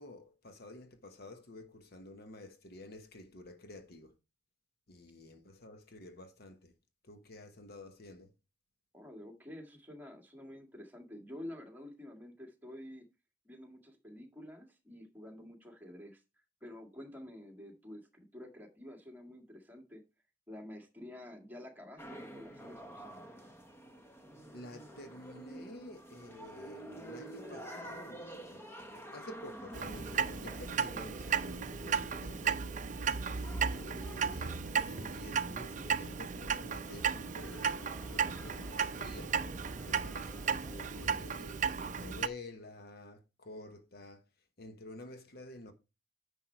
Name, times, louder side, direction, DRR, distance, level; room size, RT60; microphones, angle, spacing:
voice 1, 0.0-4.2 4.9-6.7 7.0-8.3 24.5-39.4 39.8-44.2 44.6-45.7, left 1 dB, 50° left, 1.0 m, -50 dB
voice 2, 8.9-13.1 13.5-16.2 16.6-20.0 20.5-23.3, left 1 dB, 10° right, 1.9 m, -49 dB
sound 1, 22.0-41.1, right 1 dB, 10° left, 1.0 m, -50 dB
Clock, 29.7-42.3, right 6 dB, 40° right, 0.6 m, -35 dB
10.0 x 5.5 x 4.5 m
head